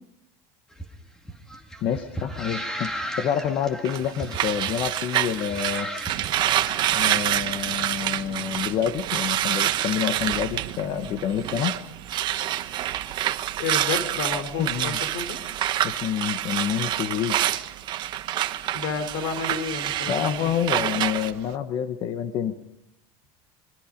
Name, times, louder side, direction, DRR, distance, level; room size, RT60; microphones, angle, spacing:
sound 1, 0.7-7.0, right 1 dB, 5° left, 2.2 m, -36 dB
voice 1, 1.8-5.9 6.9-11.7 14.6-15.0 15.8-17.4 20.1-22.6, left 9 dB, 50° left, 9 dB, 1.1 m, -28 dB
sound 2, 3.8-11.8 12.1-21.3, right 12 dB, 45° right, 1.1 m, -27 dB
sound 3, 6.1-21.6, right 12 dB, 65° right, 1.9 m, -44 dB
voice 2, 13.6-15.4 18.7-20.5, left 5 dB, 90° left, 10 dB, 3.6 m, -30 dB
25.5 x 23.0 x 5.2 m, 0.77 s
cardioid pair, 150°, 11 cm